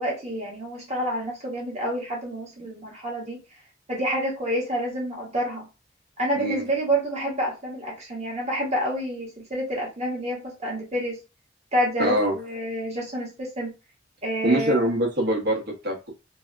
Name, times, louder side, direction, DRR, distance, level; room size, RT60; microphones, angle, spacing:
voice 1, 0.0-3.4 3.9-5.7 6.2-11.2 11.7-13.7 14.2-14.9, equal, 35° right, 1.4 m, -28 dB
voice 2, 12.0-12.3 14.4-16.1, right 1 dB, 60° right, 1.2 m, -24 dB
3.4 x 2.3 x 2.5 m
head